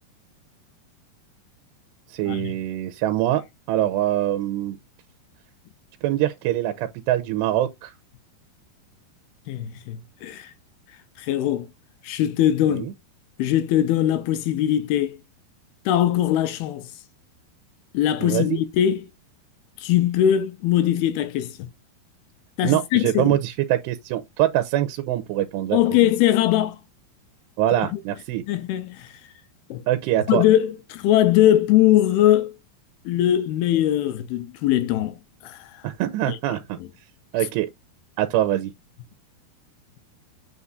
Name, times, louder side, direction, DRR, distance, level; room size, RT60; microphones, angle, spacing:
voice 1, 2.1-4.8 6.0-7.9 12.7-12.9 18.2-18.6 22.6-26.1 27.6-28.4 29.9-30.4 35.8-36.8 37.3-37.7 38.2-38.7, right 13 dB, 90° right, 2.8 m, -24 dB
voice 2, 9.5-10.5 11.2-11.7 12.0-12.9 13.4-15.2 15.9-16.9 17.9-19.1 19.8-21.7 22.6-23.4 25.7-26.8 27.9-28.0 28.5-29.1 29.7-29.8 30.3-32.5 33.1-35.1 35.4-35.8 36.3-36.4, left 12 dB, 80° left, 2.5 m, -21 dB
8.1 x 5.4 x 2.5 m
omnidirectional pair, 4.8 m